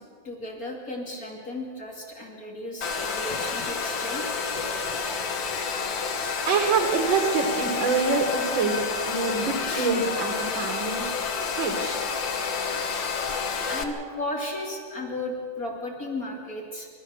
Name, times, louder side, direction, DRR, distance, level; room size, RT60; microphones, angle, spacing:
voice 1, 0.0-4.3 13.7-16.9, left 1 dB, 50° left, -1 dB, 3.1 m, -35 dB
Domestic sounds home sounds, 2.8-13.8, left 5 dB, 80° left, 2.1 m, -29 dB
voice 2, 6.4-11.0 11.5-12.0, right 4 dB, 85° right, 4 dB, 2.4 m, -26 dB
29.5 x 13.0 x 7.2 m, 2.2 s
omnidirectional pair, 2.0 m